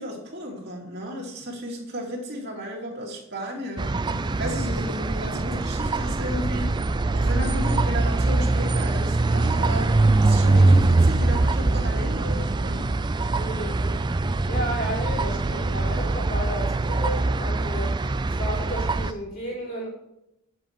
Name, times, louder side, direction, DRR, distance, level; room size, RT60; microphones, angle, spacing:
voice 1, 0.0-6.8 7.1-12.9, equal, 50° right, -2 dB, 2.5 m, -34 dB
sound 1, 3.8-19.1, right 2 dB, 20° right, 0.3 m, -23 dB
voice 2, 13.4-13.9 14.5-19.9, equal, 40° left, -4 dB, 4.1 m, -33 dB
9.7 x 7.8 x 4.7 m, 0.83 s
head